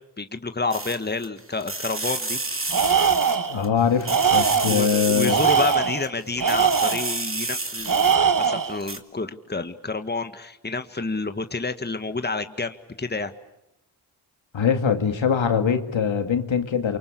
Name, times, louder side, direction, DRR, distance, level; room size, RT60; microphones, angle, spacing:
voice 1, 0.2-2.4 4.7-8.1 8.4-13.3, left 3 dB, 20° left, 1.7 m, -29 dB
sound 1, 0.7-1.3 1.6-3.7 4.0-6.1 6.4-8.5 8.8-9.0, right 2 dB, 25° right, 2.7 m, -30 dB
Tools, 2.7-3.6 4.0-4.9 5.2-7.2 7.8-8.8, right 6 dB, 45° right, 1.5 m, -21 dB
voice 2, 3.5-5.4 14.5-17.0, left 7 dB, 70° left, 2.3 m, -22 dB
28.0 x 24.5 x 8.5 m
cardioid pair, 45°, 47 cm